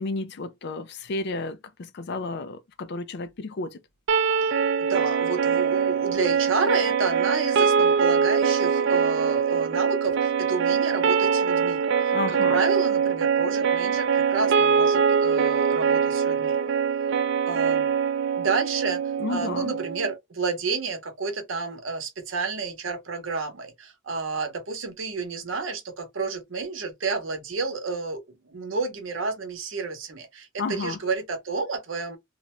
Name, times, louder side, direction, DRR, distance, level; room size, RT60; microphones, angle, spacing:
voice 1, 0.0-3.8 12.1-12.6 19.2-19.7 30.6-31.0, left 3 dB, 60° left, 0.4 m, -32 dB
sound 1, 4.1-20.1, right 6 dB, 65° right, 0.4 m, -23 dB
voice 2, 4.9-16.6 17.5-17.9 18.4-19.0 19.3-32.2, right 4 dB, 85° right, 0.8 m, -30 dB
2.5 x 2.1 x 2.9 m
head